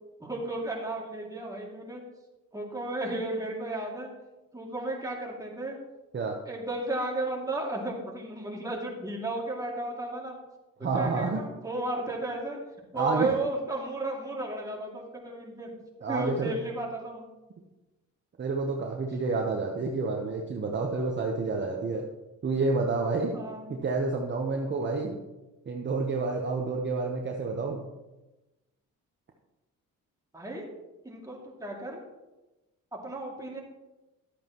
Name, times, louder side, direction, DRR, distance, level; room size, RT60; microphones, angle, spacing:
voice 1, 0.2-2.0 2.5-4.1 4.5-5.8 6.5-10.4 10.9-12.6 12.9-15.7 16.1-17.2 23.3-23.7 30.3-30.7 31.0-32.0 32.9-33.6, right 2 dB, 10° right, -2 dB, 2.5 m, -34 dB
voice 2, 10.8-11.4 12.9-13.3 16.0-16.5 18.4-22.0 22.4-23.4 23.8-25.2 25.7-27.8, right 3 dB, 40° right, 1 dB, 1.1 m, -29 dB
12.0 x 8.4 x 3.1 m, 1.1 s
cardioid pair, 90°, 30 cm